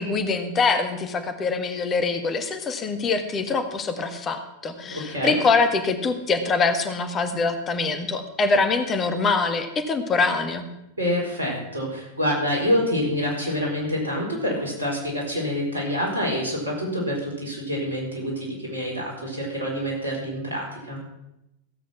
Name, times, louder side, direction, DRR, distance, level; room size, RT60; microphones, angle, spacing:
voice 1, 0.0-10.7, left 4 dB, 25° left, 8 dB, 1.4 m, -24 dB
voice 2, 4.8-5.4 11.0-21.0, equal, 75° right, -1 dB, 4.5 m, -27 dB
16.0 x 8.0 x 6.0 m, 0.88 s
figure-of-eight pair, 90°, 0 cm